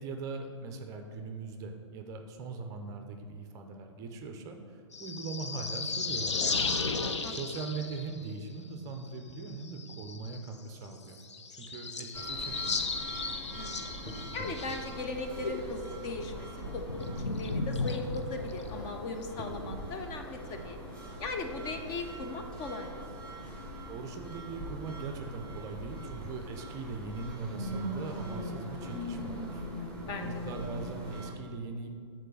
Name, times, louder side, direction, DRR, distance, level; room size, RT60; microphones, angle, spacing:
voice 1, 0.0-11.2 11.5-12.9 23.9-31.9, right 4 dB, 20° right, 5 dB, 0.5 m, -41 dB
sound 1, 4.9-8.3 9.4-10.5 10.8-10.9 11.1-15.0 15.3-18.9, left 4 dB, 70° left, 0.7 m, -35 dB
sound 2, 12.1-31.3, equal, 5° left, 1.2 m, -41 dB
voice 2, 13.6-13.9 14.3-16.5 16.7-20.8 21.2-23.1 30.0-30.3, left 3 dB, 25° left, 4 dB, 0.5 m, -38 dB
6.6 x 4.0 x 6.3 m, 2.2 s
figure-of-eight pair, 115°, 15 cm